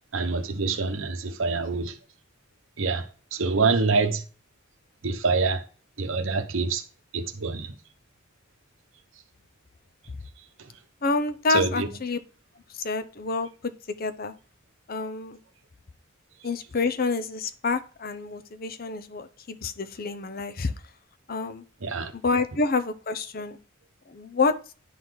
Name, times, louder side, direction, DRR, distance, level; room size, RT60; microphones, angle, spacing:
voice 1, 0.1-2.0 2.8-3.1 3.3-4.2 5.0-5.6 6.0-6.8 7.1-7.8 10.6-10.7 11.5-11.9 21.8-22.1, right 4 dB, 75° right, 0.9 m, -26 dB
voice 2, 11.0-12.2 12.8-13.7 14.0-14.3 14.9-15.4 16.4-20.7 21.3-21.6 22.2-23.6 24.1-24.5, left 3 dB, 45° left, 0.7 m, -28 dB
10.0 x 4.0 x 4.7 m
head